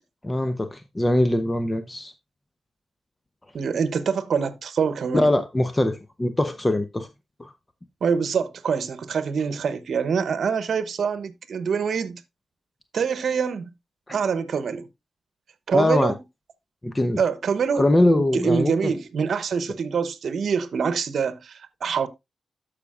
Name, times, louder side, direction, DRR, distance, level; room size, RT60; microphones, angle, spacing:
voice 1, 0.2-2.1 5.1-7.1 7.4-7.5 14.1-14.2 15.7-16.1 16.8-17.2 17.8-18.9, left 1 dB, 25° left, 0.9 m, -22 dB
voice 2, 3.5-5.3 8.0-12.2 12.9-13.7 14.1-14.9 15.7-16.2 17.2-17.8 18.2-22.1, right 6 dB, 70° right, 0.9 m, -25 dB
13.5 x 5.1 x 2.4 m
supercardioid pair, 40°, 0 cm